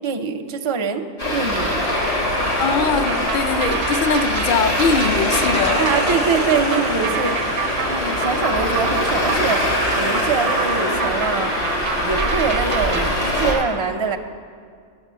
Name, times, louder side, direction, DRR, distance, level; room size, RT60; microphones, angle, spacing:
voice 1, 0.0-1.9 5.6-7.4 7.9-9.6 10.0-11.5 12.0-14.2, right 5 dB, 35° right, 5 dB, 0.5 m, -24 dB
Traffic noise roadway noise, 1.2-13.5, left 1 dB, 80° left, 3.2 m, -22 dB
voice 2, 2.6-5.9, left 5 dB, 55° left, 9 dB, 0.6 m, -21 dB
sound 1, 3.1-13.1, right 9 dB, 80° right, 0.9 m, -29 dB
9.9 x 7.3 x 7.4 m, 2.1 s
omnidirectional pair, 1.3 m